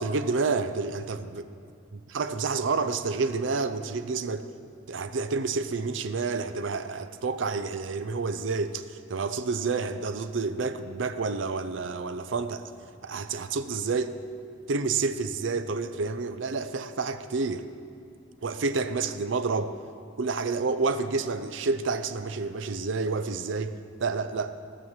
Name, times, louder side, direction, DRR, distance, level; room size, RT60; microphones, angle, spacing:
voice 1, 0.0-1.4 2.1-4.5 4.9-12.6 13.0-14.1 14.7-17.7 18.4-19.7 20.2-23.7 24.0-24.5, right 4 dB, 75° right, 11 dB, 0.5 m, -29 dB
15.0 x 6.2 x 7.3 m, 2.4 s
head